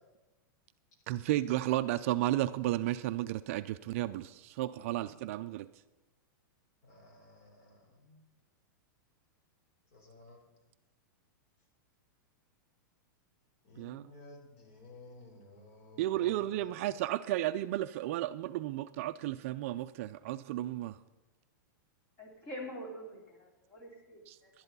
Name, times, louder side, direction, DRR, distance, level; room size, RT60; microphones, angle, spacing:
voice 1, 1.1-5.7 13.8-14.1 16.0-21.0 24.3-24.4, right 14 dB, 40° right, 12 dB, 0.4 m, -33 dB
voice 2, 6.8-8.2 9.9-10.4 13.6-16.8, left 2 dB, 45° left, 1 dB, 3.9 m, -54 dB
voice 3, 22.2-24.5, equal, 20° left, -1 dB, 2.9 m, -45 dB
11.5 x 10.5 x 5.4 m, 1.1 s
supercardioid pair, 165°, 11 cm